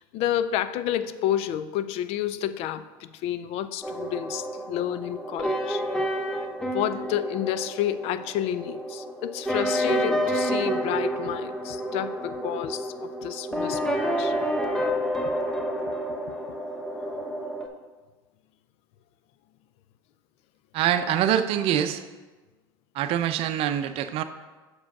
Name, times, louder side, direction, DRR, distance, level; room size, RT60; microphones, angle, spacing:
voice 1, 0.0-5.8 6.7-14.4, left 11 dB, 60° left, 0.4 m, -30 dB
sound 1, 3.8-17.7, equal, 5° left, 0.8 m, -29 dB
voice 2, 20.7-22.0 22.9-24.2, right 10 dB, 55° right, 0.6 m, -24 dB
6.2 x 5.0 x 5.9 m
supercardioid pair, 105°, 12 cm